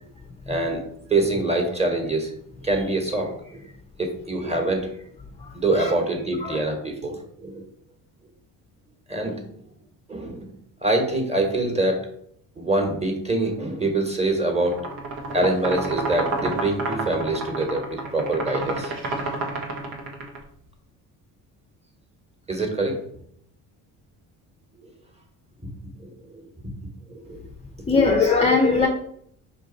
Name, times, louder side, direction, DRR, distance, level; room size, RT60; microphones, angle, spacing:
voice 1, 0.5-0.8 1.1-2.3 2.6-3.6 4.0-4.9 5.5-7.6 9.1-9.4 10.1-10.5 10.8-12.1 12.6-14.8 15.1-18.9 22.5-23.0 26.0-26.1 27.1-27.4, right 2 dB, 15° right, 3 dB, 1.1 m, -25 dB
sound 1, 14.6-20.4, right 2 dB, 90° right, 1.0 m, -29 dB
voice 2, 27.9-28.9, left 4 dB, 15° left, 3 dB, 0.5 m, -19 dB
5.1 x 2.6 x 3.8 m, 0.68 s
supercardioid pair, 80°, 44 cm